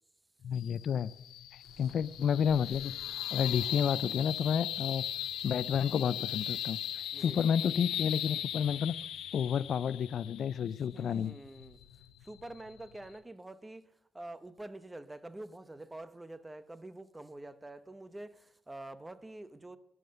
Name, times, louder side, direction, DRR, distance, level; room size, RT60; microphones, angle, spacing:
voice 1, 0.4-1.1 1.5-2.9 3.3-5.0 5.4-9.0 9.3-11.3, left 8 dB, 55° left, 0.4 m, -30 dB
sound 1, 0.5-13.2, left 11 dB, 80° left, 0.8 m, -39 dB
sound 2, 1.6-6.6, right 4 dB, 45° right, 2.0 m, -60 dB
voice 2, 7.1-7.9 10.9-13.8 14.1-19.8, right 2 dB, 15° right, 0.9 m, -47 dB
12.5 x 11.0 x 6.5 m
cardioid pair, 105°, 0 cm